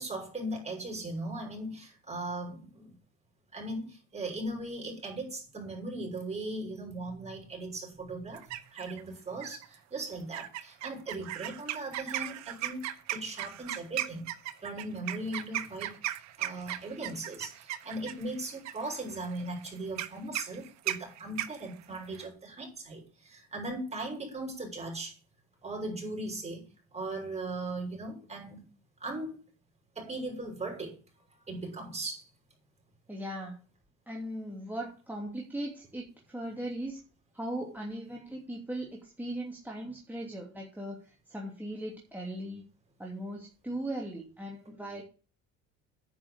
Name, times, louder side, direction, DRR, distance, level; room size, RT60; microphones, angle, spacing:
voice 1, 0.0-3.0 3.5-14.3 14.6-16.0 16.4-25.1 25.6-26.6 26.9-28.6 29.0-29.4 29.9-31.0 31.5-32.3, right 2 dB, 20° right, 6.5 m, -38 dB
sound 1, 8.3-9.0 9.4-9.8 10.3-22.3, right 14 dB, 70° right, 1.4 m, -37 dB
voice 2, 33.1-33.6 34.1-37.0 37.3-42.6 43.0-45.0, right 1 dB, 5° right, 2.8 m, -38 dB
10.0 x 6.2 x 8.0 m
cardioid pair, 110°, 29 cm